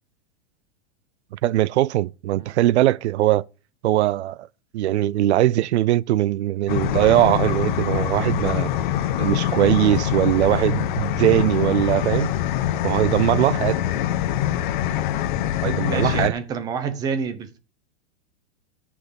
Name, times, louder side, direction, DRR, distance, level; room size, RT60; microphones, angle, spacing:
voice 1, 1.4-3.4 3.8-4.5 4.7-8.7 9.2-12.3 12.8-13.8 15.6-16.3, right 14 dB, 90° right, 0.6 m, -20 dB
sound 1, 6.7-16.3, left 11 dB, 45° left, 0.9 m, -24 dB
voice 2, 15.9-17.6, right 6 dB, 10° right, 0.7 m, -28 dB
10.0 x 6.2 x 7.1 m
supercardioid pair, 180°, 33 cm